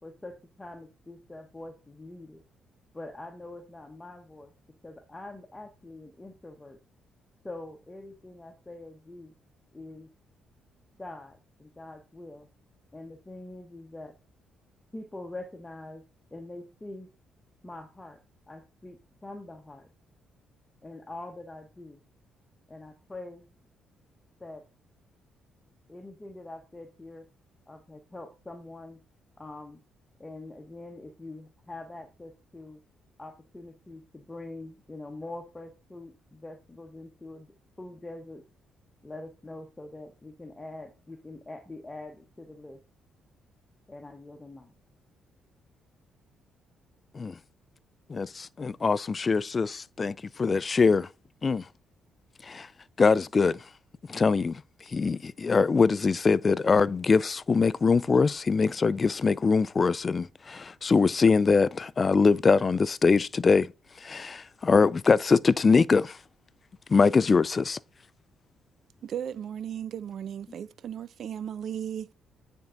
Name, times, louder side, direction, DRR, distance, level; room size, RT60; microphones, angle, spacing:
voice 1, 0.0-2.4 2.9-4.5 4.8-6.8 7.4-9.3 9.7-10.1 11.0-12.5 12.9-14.1 14.9-16.0 16.3-17.1 17.6-18.2 18.5-19.9 20.8-22.0 22.7-23.5 24.4-24.6 25.9-27.2 27.7-29.0 29.4-29.8 30.2-32.8 33.2-37.5 37.8-38.4 39.0-42.8 43.9-44.7, left 2 dB, 15° left, 1.1 m, -44 dB
voice 2, 48.1-51.1 51.4-51.6 52.4-52.7 53.0-53.6 54.1-54.6 54.9-63.7 64.0-66.2 66.9-67.8, left 4 dB, 35° left, 0.4 m, -23 dB
voice 3, 69.0-72.1, right 9 dB, 60° right, 0.5 m, -36 dB
9.5 x 4.6 x 3.9 m
cardioid pair, 90°, 0 cm